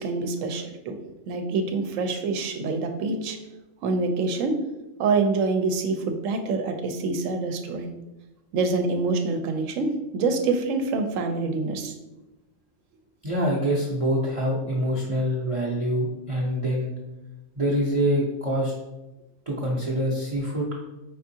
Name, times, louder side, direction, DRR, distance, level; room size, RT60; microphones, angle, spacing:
voice 1, 0.0-3.4 3.8-4.6 5.0-7.9 8.5-12.0, right 3 dB, 80° right, 6 dB, 1.0 m, -26 dB
voice 2, 13.2-16.9 17.6-18.7 19.5-20.7, equal, 35° right, -4 dB, 0.6 m, -25 dB
5.3 x 3.5 x 2.7 m, 1.0 s
omnidirectional pair, 1.3 m